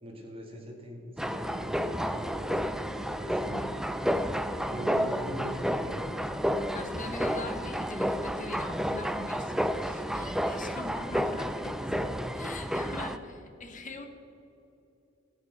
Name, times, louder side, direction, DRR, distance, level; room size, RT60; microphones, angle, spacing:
voice 1, 0.0-3.4 4.7-6.0 11.6-12.0, equal, 30° right, 0 dB, 2.2 m, -41 dB
sound 1, 1.2-13.2, equal, 5° right, 0.4 m, -31 dB
voice 2, 3.4-3.9 6.7-11.8 12.3-14.1, left 2 dB, 40° left, 6 dB, 1.2 m, -42 dB
15.0 x 8.6 x 6.6 m, 2.9 s
head